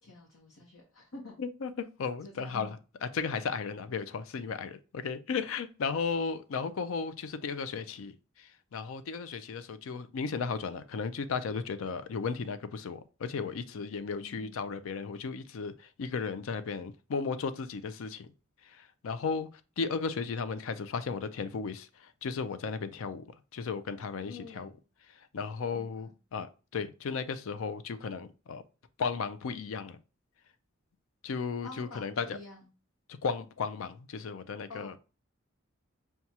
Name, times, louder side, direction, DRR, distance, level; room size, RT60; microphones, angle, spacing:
voice 1, 0.0-1.4 2.2-2.7 14.1-14.6 24.2-24.8 25.7-26.1 31.6-32.6 34.7-35.0, left 3 dB, 90° left, 0.9 m, -48 dB
voice 2, 1.4-2.8 3.0-18.3 18.6-19.5 19.8-23.2 23.5-24.7 25.3-28.6 29.0-30.0 31.2-32.4 33.2-34.9, left 5 dB, 70° left, 0.4 m, -35 dB
5.8 x 2.3 x 2.7 m
head